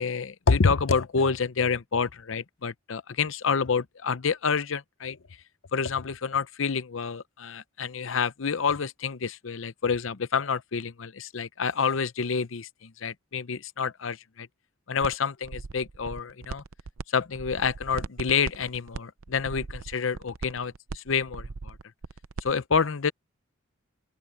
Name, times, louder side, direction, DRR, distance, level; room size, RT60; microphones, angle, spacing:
voice 1, 0.0-5.2 5.7-14.5 14.9-16.6 17.1-21.8 22.4-23.1, left 5 dB, 65° left, 0.7 m, -28 dB
sound 1, 15.0-15.1 15.4-17.0 17.3-22.5, right 4 dB, 80° right, 0.7 m, -38 dB
open air
head